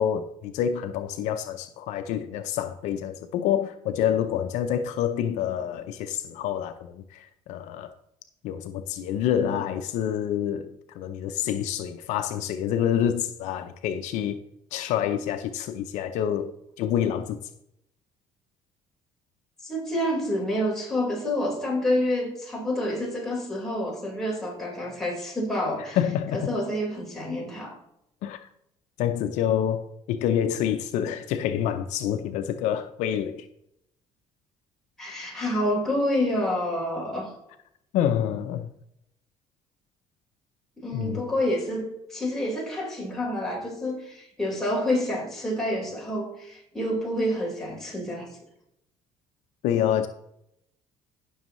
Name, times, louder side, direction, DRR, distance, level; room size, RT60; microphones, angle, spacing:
voice 1, 0.0-7.9 8.4-14.4 14.7-17.4 26.0-26.5 28.2-28.4 29.0-33.5 37.9-38.7 40.9-41.3 49.6-50.1, left 9 dB, 75° left, 0.7 m, -27 dB
voice 2, 19.6-26.0 26.3-27.8 35.0-37.3 40.8-48.3, left 1 dB, 5° left, 4.3 m, -28 dB
15.0 x 6.4 x 3.1 m
cardioid pair, 115°, 12 cm